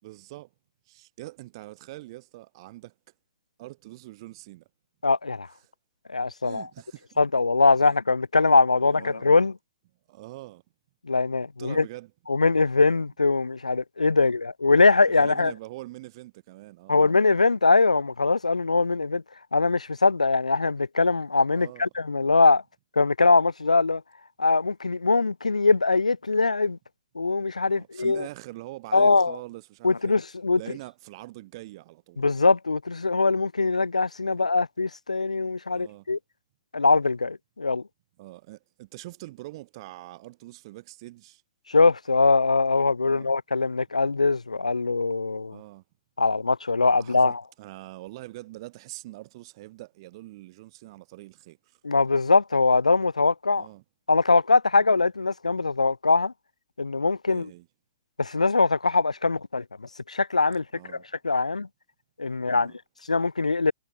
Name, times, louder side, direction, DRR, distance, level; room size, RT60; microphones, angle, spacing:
voice 1, 0.0-0.5 0.9-2.9 3.6-4.7 6.4-7.2 7.9-8.0 8.8-9.4 10.1-10.6 11.6-12.1 14.2-14.3 15.1-17.0 21.5-21.9 27.7-30.1 30.6-32.2 34.3-34.4 35.7-36.1 38.2-41.4 43.0-43.3 45.5-45.8 47.0-51.8 53.5-53.8 54.8-54.9 57.3-57.7 60.7-61.1 62.5-62.8, right 18 dB, 45° right, 6.2 m, -43 dB
voice 2, 5.0-5.5 6.1-6.7 7.2-9.6 11.1-11.8 12.3-15.5 16.9-19.2 19.5-22.6 23.0-24.0 24.4-26.8 27.2-28.3 28.9-29.4 29.8-30.6 32.2-36.2 36.7-37.8 41.7-45.6 46.2-47.4 51.8-53.7 54.1-56.3 56.8-57.5 58.2-60.6 61.2-61.7 62.2-62.7 63.1-63.7, left 3 dB, 90° left, 0.4 m, -22 dB
figure-of-eight pair, 115°, 4 cm